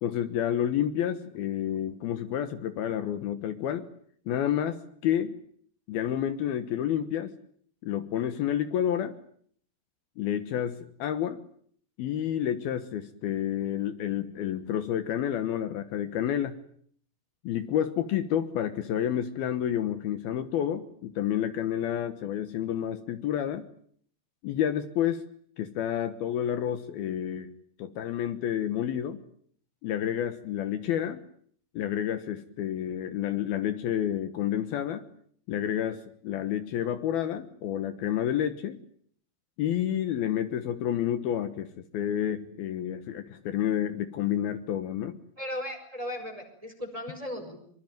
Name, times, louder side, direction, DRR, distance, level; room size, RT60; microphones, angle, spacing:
voice 1, 0.0-3.9 4.3-5.3 5.9-7.3 7.8-9.2 10.2-11.4 12.0-16.6 17.4-23.7 24.4-25.3 25.6-27.5 27.8-29.2 29.8-31.2 31.7-35.0 35.5-38.8 39.6-45.2, left 10 dB, 70° left, 10 dB, 3.0 m, -29 dB
voice 2, 45.4-47.6, left 1 dB, 10° right, 5 dB, 4.9 m, -36 dB
25.0 x 24.0 x 9.2 m, 0.62 s
omnidirectional pair, 4.8 m